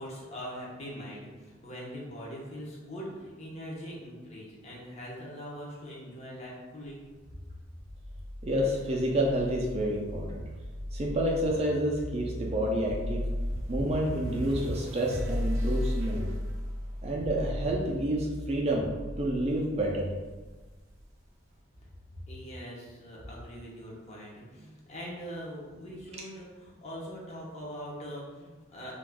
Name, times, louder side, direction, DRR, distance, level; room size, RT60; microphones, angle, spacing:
voice 1, 0.0-7.0 22.3-28.9, equal, 35° left, -4 dB, 0.6 m, -42 dB
sound 1, 7.9-21.0, equal, 90° right, 0.5 m, -36 dB
voice 2, 8.4-10.4 10.9-13.2 13.7-16.3 17.0-18.9 19.2-20.1, right 1 dB, 30° right, -2 dB, 0.3 m, -29 dB
2.4 x 2.3 x 3.3 m, 1.3 s
head